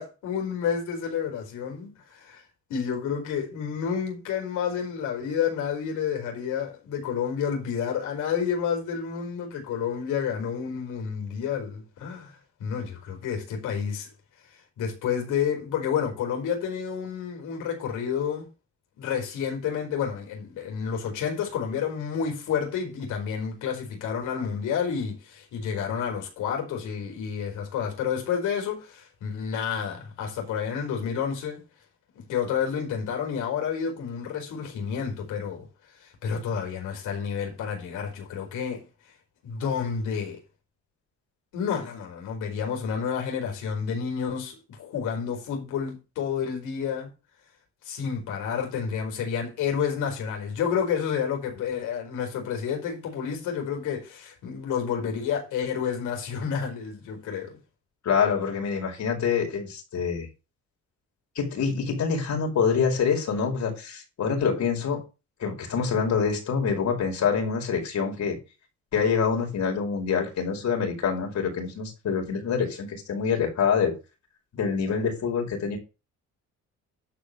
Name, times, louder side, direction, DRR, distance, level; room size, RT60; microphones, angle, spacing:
voice 1, 0.0-2.4 2.7-14.1 14.8-18.5 19.0-31.6 32.1-35.7 36.0-38.8 39.4-40.4 41.5-47.1 47.8-57.6, left 7 dB, 90° left, 4.8 m, -30 dB
voice 2, 58.0-60.3 61.3-65.0 65.4-68.4 68.9-73.9 74.5-75.8, left 6 dB, 65° left, 5.0 m, -26 dB
11.5 x 5.1 x 6.7 m
cardioid pair, 90°, 30 cm